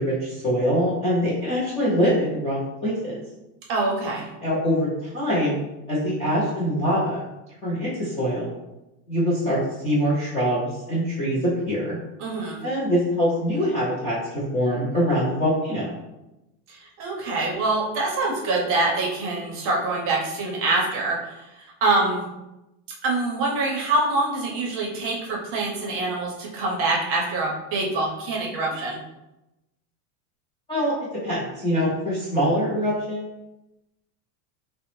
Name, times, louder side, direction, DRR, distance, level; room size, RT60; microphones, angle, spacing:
voice 1, 0.0-3.2 4.4-5.6 5.9-7.2 7.6-8.5 9.1-9.6 9.8-12.0 12.6-15.9 30.7-30.9 31.2-33.3, equal, 15° left, -10 dB, 0.3 m, -24 dB
voice 2, 3.7-4.3 12.2-12.6 16.7-21.4 21.8-22.2 23.0-29.0, right 2 dB, 35° right, -1 dB, 0.6 m, -25 dB
3.7 x 2.0 x 2.9 m, 0.95 s
supercardioid pair, 170°, 41 cm